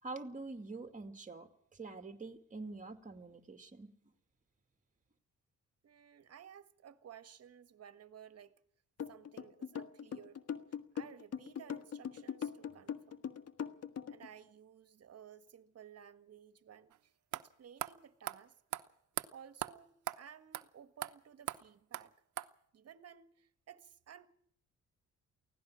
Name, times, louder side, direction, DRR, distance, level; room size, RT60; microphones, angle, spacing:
voice 1, 0.0-3.9, right 3 dB, 25° right, 2.4 m, -46 dB
voice 2, 5.8-8.5 9.1-10.4 10.9-13.3 14.1-18.5 19.3-22.1 22.7-24.3, right 8 dB, 55° right, 1.6 m, -56 dB
sound 1, 9.0-14.3, left 8 dB, 55° left, 1.6 m, -41 dB
sound 2, 16.9-17.0 17.3-17.4 17.8-17.9 18.3-18.4 18.7-18.8 19.2-19.3 19.6-19.7 20.1-20.2 20.5-20.6 21.0-21.1 21.5-21.6 21.9-22.0 22.4-22.5, right 14 dB, 75° right, 1.1 m, -38 dB
24.0 x 17.0 x 6.3 m
cardioid pair, 90°, 30 cm